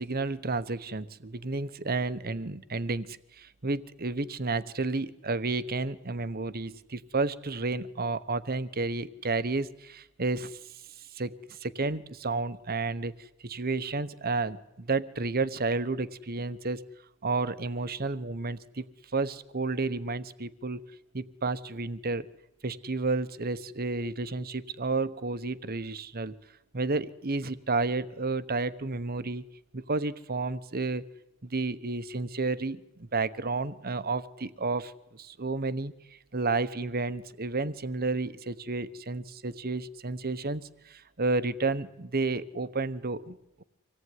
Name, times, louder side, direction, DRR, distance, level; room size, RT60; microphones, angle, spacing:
voice 1, 0.0-16.8 17.2-18.9 19.1-20.8 21.1-22.3 22.6-26.3 26.7-29.4 29.7-31.0 31.4-35.9 36.3-43.6, right 3 dB, 45° right, 14 dB, 1.1 m, -31 dB
25.5 x 18.0 x 9.6 m, 0.89 s
head